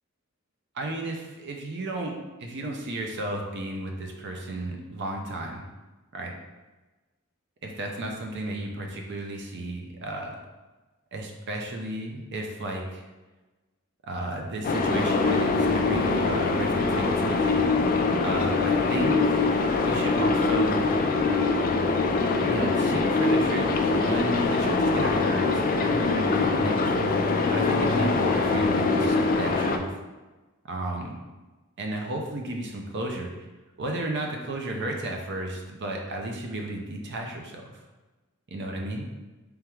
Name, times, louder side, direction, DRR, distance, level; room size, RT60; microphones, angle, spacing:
voice 1, 0.7-2.1 2.4-5.6 6.1-6.3 7.6-10.4 11.1-13.0 14.0-17.8 18.2-19.5 19.8-20.9 22.4-27.2 27.5-29.9 30.7-31.2 31.8-33.3 33.8-37.8 38.5-39.1, right 1 dB, 55° right, 2 dB, 0.5 m, -33 dB
sound 1, 14.6-29.8, left 3 dB, 40° left, 0.3 m, -23 dB
3.5 x 3.4 x 3.0 m, 1.2 s
head